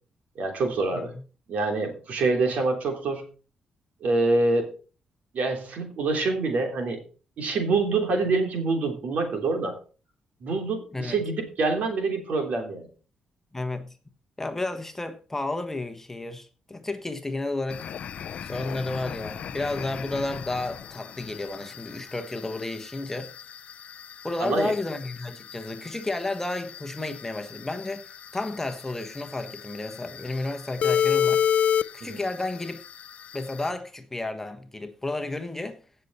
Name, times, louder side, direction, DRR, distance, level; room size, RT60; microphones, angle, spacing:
voice 1, 0.3-1.1 1.5-3.2 4.0-4.7 5.3-7.0 7.4-9.8 10.4-12.9 24.4-24.7 32.0-32.2, right 3 dB, 70° right, 3.4 m, -26 dB
voice 2, 13.5-13.9 14.4-17.8 18.4-23.3 24.2-31.4 31.9-32.8 33.3-35.8, left 2 dB, 15° left, 1.3 m, -32 dB
sound 1, 17.7-33.7, left 8 dB, 60° left, 0.5 m, -31 dB
16.5 x 6.8 x 4.3 m
cardioid pair, 110°, 3 cm